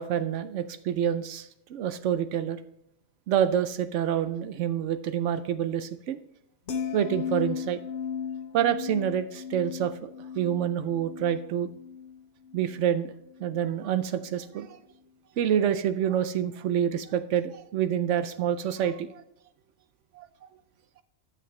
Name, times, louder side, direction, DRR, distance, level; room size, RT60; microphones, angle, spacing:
voice 1, 0.0-2.6 3.3-6.2 6.9-7.8 8.5-11.7 12.5-13.1 13.4-14.8 15.4-19.2 20.1-20.3, right 9 dB, 80° right, 11 dB, 0.9 m, -27 dB
sound 1, 6.7-13.0 13.3-13.6, left 7 dB, 70° left, 1.2 m, -36 dB
13.0 x 6.7 x 3.2 m, 0.77 s
omnidirectional pair, 1.2 m